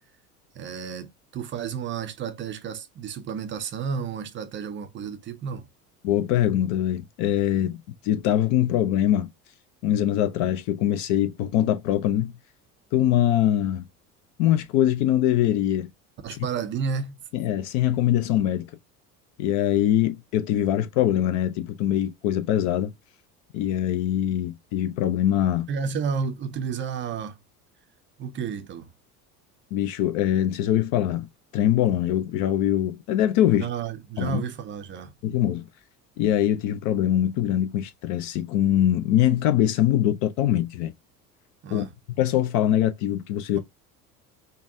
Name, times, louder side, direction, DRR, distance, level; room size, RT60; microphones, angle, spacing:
voice 1, 0.5-5.7 16.2-17.2 25.7-27.4 28.2-28.9 33.6-35.1 41.6-41.9, right 6 dB, 25° right, 0.5 m, -31 dB
voice 2, 6.0-9.3 9.8-12.3 12.9-13.8 14.4-15.9 16.3-16.4 17.3-18.7 19.4-22.9 23.5-25.7 29.7-31.3 31.5-33.7 34.2-34.4 35.2-35.7 36.2-40.9 41.7-41.9 42.2-43.6, left 11 dB, 40° left, 0.4 m, -23 dB
5.1 x 2.2 x 2.6 m
figure-of-eight pair, 65°, 47 cm